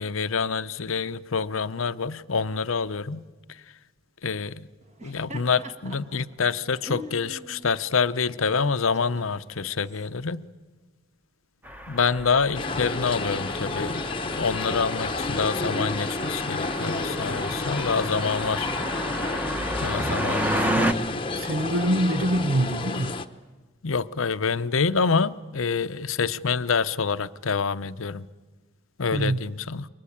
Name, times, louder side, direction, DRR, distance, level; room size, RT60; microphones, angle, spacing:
voice 1, 0.0-3.2 4.2-4.7 5.0-10.4 11.9-14.0 14.3-18.7 19.8-21.0 23.8-28.3 29.0-29.9, left 5 dB, 80° left, 0.8 m, -27 dB
Laughter, 4.8-10.1, left 1 dB, 35° right, 1.9 m, -44 dB
sound 1, 11.6-20.9, equal, 10° right, 1.2 m, -31 dB
sound 2, 12.5-23.3, left 3 dB, 25° left, 1.0 m, -30 dB
voice 2, 21.4-23.2 29.1-29.4, right 1 dB, 75° right, 1.0 m, -25 dB
28.5 x 23.5 x 8.8 m
head